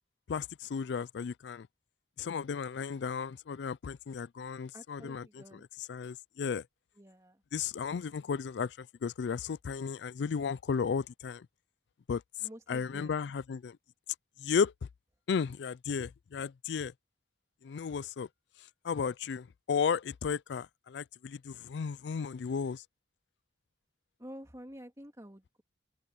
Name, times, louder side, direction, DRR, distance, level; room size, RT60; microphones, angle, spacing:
voice 1, 0.3-1.7 2.2-6.6 7.5-11.5 12.1-12.2 12.7-13.8 14.4-14.7 15.3-16.9 17.6-18.3 18.8-22.8, left 6 dB, 65° left, 0.4 m, -34 dB
voice 2, 4.7-5.6 7.0-7.4 12.4-13.1 24.2-25.6, equal, 20° right, 2.9 m, -49 dB
head